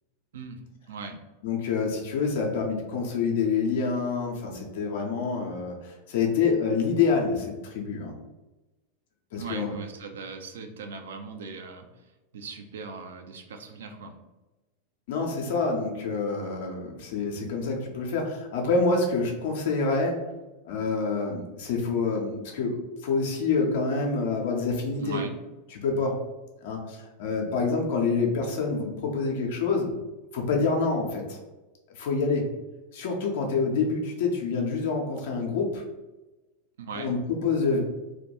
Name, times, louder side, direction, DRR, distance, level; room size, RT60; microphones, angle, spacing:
voice 1, 0.9-1.2 9.3-11.9 12.3-14.1 25.0-25.4 36.8-37.1, right 4 dB, 60° right, 5 dB, 0.3 m, -39 dB
voice 2, 1.4-8.1 9.3-9.7 15.1-20.2 20.6-25.2 25.7-26.2 26.6-29.9 30.3-31.4 31.9-32.4 32.9-35.8 36.9-37.8, left 4 dB, 55° left, 1 dB, 0.4 m, -27 dB
2.2 x 2.2 x 2.8 m, 1.1 s
figure-of-eight pair, 90°, 0 cm